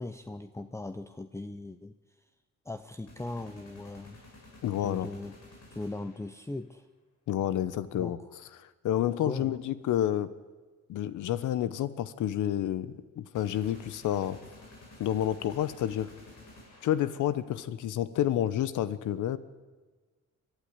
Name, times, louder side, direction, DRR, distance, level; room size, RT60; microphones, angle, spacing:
voice 1, 0.0-1.9 2.7-4.2 4.8-5.4 5.7-6.9 7.9-8.3 9.0-9.6, left 2 dB, 10° left, 10 dB, 0.8 m, -39 dB
sound 1, 3.1-6.4 13.3-17.4, left 2 dB, 60° left, 7.2 m, -52 dB
voice 2, 4.6-5.1 7.3-8.2 8.6-10.3 10.9-14.4 15.0-16.1 16.8-19.4, left 11 dB, 80° left, 16 dB, 1.1 m, -29 dB
22.5 x 12.0 x 9.9 m, 1.3 s
cardioid pair, 90°, 30 cm